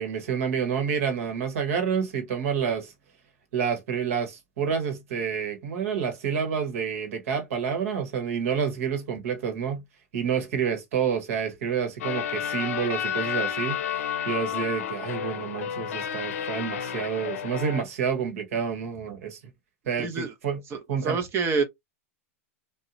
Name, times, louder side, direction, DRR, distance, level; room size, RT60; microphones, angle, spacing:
voice 1, 0.0-2.9 3.5-9.8 10.1-19.4 19.9-20.6 20.9-21.2, right 7 dB, 70° right, 1.0 m, -29 dB
sound 1, 12.0-17.8, left 9 dB, 75° left, 0.5 m, -31 dB
voice 2, 20.0-20.3 20.7-20.8 21.0-21.6, right 4 dB, 35° right, 0.6 m, -26 dB
2.7 x 2.1 x 2.5 m
hypercardioid pair, 110°, 8 cm